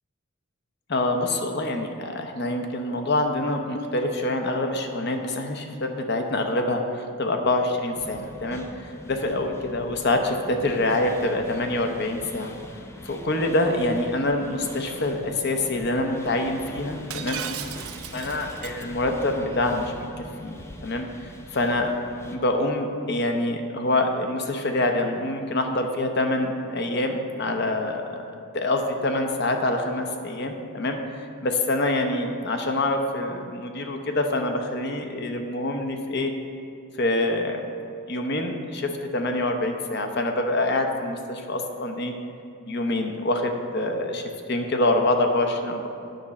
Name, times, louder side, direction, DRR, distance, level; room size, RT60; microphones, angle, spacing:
voice 1, 0.9-12.6 13.0-17.4 18.1-20.1 20.4-21.1 21.5-21.9 22.3-28.2 28.5-36.3 37.0-37.6 38.1-42.1 42.7-44.2 44.5-45.9, left 2 dB, 50° left, 4 dB, 0.7 m, -26 dB
sound 1, 7.9-22.4, left 1 dB, 10° left, 0.4 m, -43 dB
Shatter, 17.1-18.8, right 9 dB, 85° right, 0.5 m, -35 dB
9.2 x 6.0 x 4.2 m, 2.6 s
head